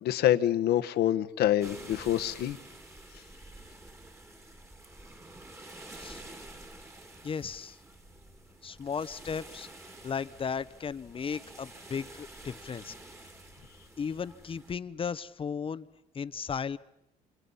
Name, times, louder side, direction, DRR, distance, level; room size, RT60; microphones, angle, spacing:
voice 1, 0.0-2.6, left 12 dB, 70° left, 9 dB, 1.4 m, -26 dB
sound 1, 1.6-14.7, right 2 dB, 15° right, 2.5 m, -49 dB
voice 2, 7.2-7.8 8.6-9.7 10.0-12.9 14.0-15.9 16.1-16.8, left 6 dB, 30° left, 15 dB, 0.9 m, -35 dB
29.5 x 27.0 x 5.7 m, 0.82 s
cardioid pair, 110°, 17 cm